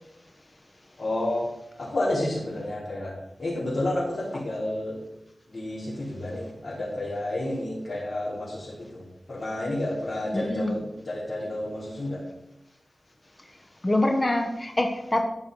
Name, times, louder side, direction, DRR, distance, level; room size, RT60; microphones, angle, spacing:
voice 1, 1.0-1.5 1.8-3.1 3.4-5.0 5.5-12.2, left 1 dB, 65° left, -8 dB, 3.9 m, -30 dB
voice 2, 10.3-10.7 13.8-15.2, left 1 dB, 30° left, 4 dB, 1.1 m, -25 dB
12.5 x 5.6 x 5.4 m, 0.84 s
cardioid pair, 55°, 0 cm